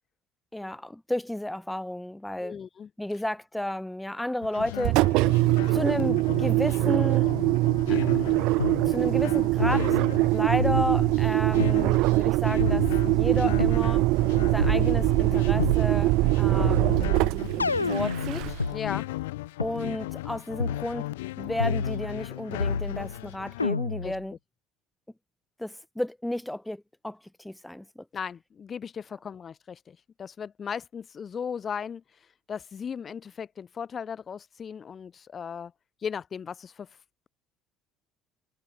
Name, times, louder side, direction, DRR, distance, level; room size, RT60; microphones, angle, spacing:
voice 1, 0.5-2.6 3.0-5.0 5.7-7.3 7.9-8.0 8.8-10.0 10.3-14.1 14.5-17.1 17.9-18.5 19.6-21.1 21.4-24.4 25.6-28.0, left 1 dB, 5° left, 0.9 m, -32 dB
voice 2, 2.4-2.9 18.7-19.1 24.0-24.2 28.1-32.0 32.5-35.7 36.0-36.9, left 7 dB, 35° left, 3.2 m, -36 dB
sound 1, 4.4-23.7, left 18 dB, 70° left, 2.7 m, -37 dB
Engine, 4.8-18.8, right 21 dB, 60° right, 0.3 m, -23 dB
sound 2, 8.6-8.8 9.6-10.3 10.6-11.8 12.6-13.8 14.6-15.8 16.6-18.7 19.6-19.7 20.6-20.8 21.6-22.3 22.6-23.2 23.6-24.2, left 4 dB, 90° left, 0.4 m, -30 dB
figure-of-eight pair, 60°, 0 cm